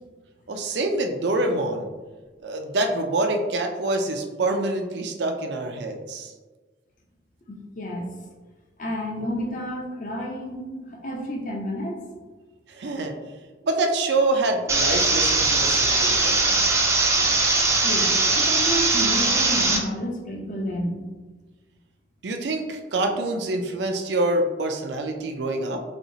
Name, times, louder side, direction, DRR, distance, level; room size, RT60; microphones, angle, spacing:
voice 1, 0.5-1.9 2.4-6.3 9.2-9.3 12.7-13.2 13.6-16.6 22.2-25.8, right 2 dB, 70° right, 4 dB, 0.5 m, -26 dB
voice 2, 7.5-8.1 8.8-12.0 17.8-21.0, equal, 45° left, 1 dB, 0.6 m, -30 dB
sound 1, 14.7-19.8, right 3 dB, 15° right, 0.4 m, -20 dB
4.3 x 2.8 x 2.7 m, 1.3 s
head